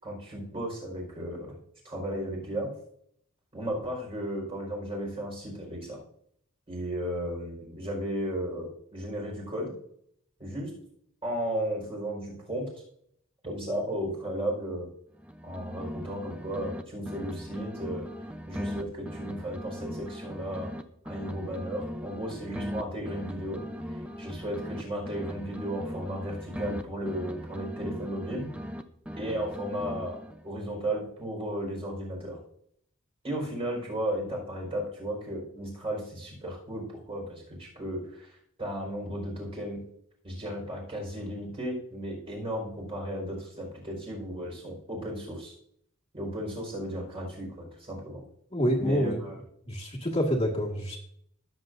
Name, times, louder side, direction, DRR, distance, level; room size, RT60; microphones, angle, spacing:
voice 1, 0.0-1.6 1.8-2.7 3.5-6.0 6.7-9.7 10.4-10.7 11.2-12.7 13.4-14.9 15.4-18.1 18.5-20.7 21.0-23.6 24.2-28.5 29.2-30.2 30.4-32.4 33.2-39.8 40.2-45.5 46.1-48.2 48.8-49.3, equal, 25° right, -1 dB, 4.8 m, -34 dB
sound 1, 15.1-16.8 17.1-20.8 21.1-24.8 25.1-28.8 29.1-30.5, equal, 5° right, 0.6 m, -39 dB
voice 2, 48.5-49.2 49.7-51.0, equal, 30° left, -1 dB, 1.9 m, -27 dB
20.5 x 7.9 x 2.6 m, 0.70 s
head